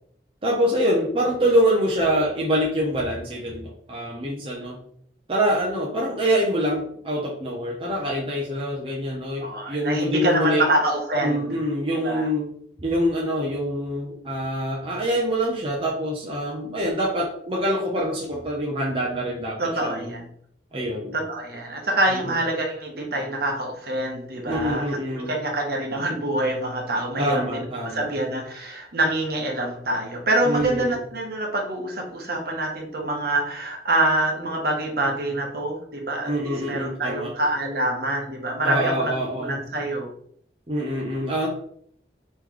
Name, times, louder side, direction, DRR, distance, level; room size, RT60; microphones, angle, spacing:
voice 1, 0.4-4.8 5.3-10.7 11.2-12.5 12.8-20.1 20.7-21.2 22.1-22.4 24.4-25.3 27.2-28.1 30.4-31.0 36.2-37.3 38.6-39.6 40.7-41.5, equal, 30° right, -3 dB, 0.7 m, -25 dB
voice 2, 9.4-11.5 12.0-12.3 19.6-20.2 21.1-24.9 25.3-27.7 27.9-36.3 36.6-39.1 39.4-40.1, right 1 dB, 55° right, 0 dB, 1.0 m, -25 dB
3.3 x 3.1 x 3.7 m, 0.64 s
head